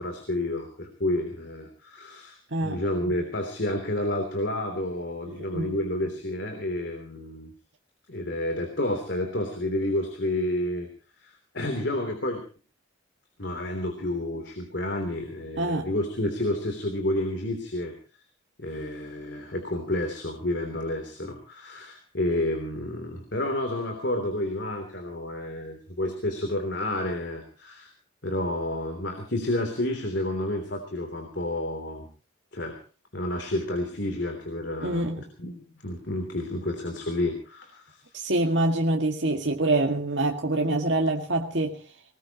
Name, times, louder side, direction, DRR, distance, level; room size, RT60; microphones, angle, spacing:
voice 1, 0.0-7.5 8.1-10.9 11.2-12.4 13.4-17.9 18.6-27.9 28.2-32.1 32.5-32.8 33.1-35.1 35.4-38.0, left 1 dB, 60° left, 5 dB, 3.3 m, -30 dB
voice 2, 2.5-2.8 5.3-5.7 15.6-15.9 34.8-35.2 38.1-41.8, right 2 dB, 65° right, 1 dB, 2.1 m, -25 dB
21.0 x 20.0 x 3.0 m, 0.37 s
head